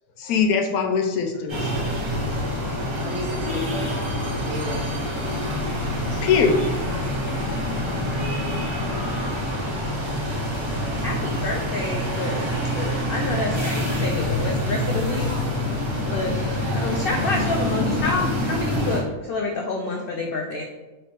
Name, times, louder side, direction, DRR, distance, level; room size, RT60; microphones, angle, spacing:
voice 1, 0.2-1.8 5.8-7.0, left 5 dB, 90° left, 3 dB, 1.1 m, -23 dB
sound 1, 1.5-19.0, left 1 dB, 25° right, 0.7 m, -26 dB
voice 2, 2.9-4.0 4.3-4.9, right 1 dB, 65° right, 1 dB, 0.9 m, -33 dB
voice 3, 10.9-15.3 16.0-20.6, left 2 dB, 75° left, 1 dB, 0.5 m, -28 dB
3.1 x 3.0 x 4.3 m, 1.1 s
omnidirectional pair, 1.5 m